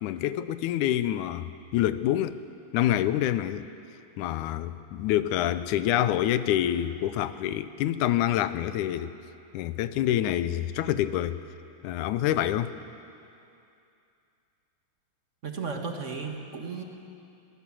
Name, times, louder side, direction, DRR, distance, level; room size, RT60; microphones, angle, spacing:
voice 1, 0.0-2.4 2.7-3.7 4.2-9.1 9.5-11.4 11.8-12.7, left 12 dB, 85° left, 13 dB, 2.1 m, -27 dB
voice 2, 15.4-16.8, right 4 dB, 35° right, 2 dB, 1.4 m, -34 dB
21.5 x 18.0 x 7.6 m, 2.6 s
omnidirectional pair, 3.5 m